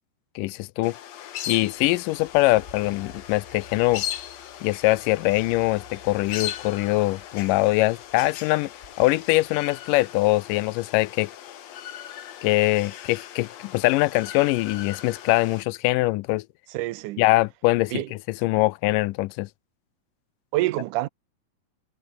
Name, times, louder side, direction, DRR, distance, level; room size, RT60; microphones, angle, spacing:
voice 1, 0.4-0.9 1.5-4.0 4.6-8.7 9.0-11.3 12.4-16.4 17.2-18.0 18.3-19.5, left 19 dB, 80° left, 2.1 m, -23 dB
sound 1, 0.8-15.6, left 11 dB, 60° left, 2.2 m, -38 dB
sound 2, 1.6-10.0, left 3 dB, 20° left, 3.8 m, -52 dB
voice 2, 16.7-17.2 17.9-18.1 20.5-21.1, right 17 dB, 75° right, 2.0 m, -26 dB
omnidirectional pair, 4.1 m